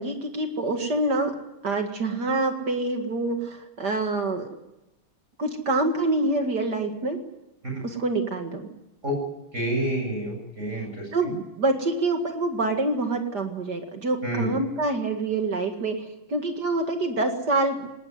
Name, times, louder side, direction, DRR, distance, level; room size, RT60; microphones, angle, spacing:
voice 1, 0.0-1.3 1.6-4.5 5.4-7.2 7.8-8.7 11.1-17.9, right 2 dB, 55° right, 5 dB, 2.5 m, -26 dB
voice 2, 9.5-11.4 14.2-14.5, right 1 dB, 35° right, 1 dB, 8.2 m, -29 dB
19.5 x 19.0 x 9.5 m, 0.92 s
omnidirectional pair, 2.2 m